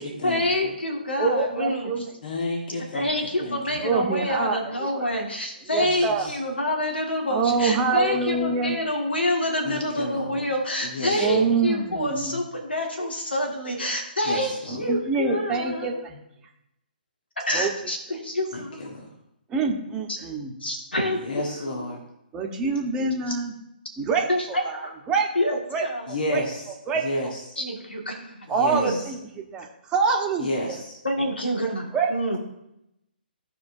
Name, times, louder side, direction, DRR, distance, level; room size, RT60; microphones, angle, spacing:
voice 1, 0.2-1.9 2.9-15.9 17.5-18.9 20.6-21.9 23.3-23.4 24.3-24.9 25.4-26.1 27.6-29.0 31.0-32.4, left 1 dB, 85° left, 1 dB, 2.1 m, -27 dB
voice 2, 1.2-2.1 3.7-5.1 5.7-6.3 7.3-8.8 11.1-12.4 14.7-16.2 17.5-17.7 19.5-20.6 22.3-23.5 24.0-24.3 24.6-25.3 25.7-25.9 26.3-26.4 26.9-27.3 28.5-30.8 31.9-32.1, right 4 dB, 15° right, 0 dB, 1.2 m, -26 dB
voice 3, 2.2-3.1 3.5-3.6 6.2-6.3 9.6-10.3 10.8-11.6 14.3-14.8 18.5-18.6 18.9-19.0 21.2-22.0 26.1-26.6 27.0-27.3 28.6-29.0 30.4-30.9, left 1 dB, 60° left, 0 dB, 1.6 m, -30 dB
15.0 x 5.0 x 2.7 m, 0.84 s
figure-of-eight pair, 140°, 5 cm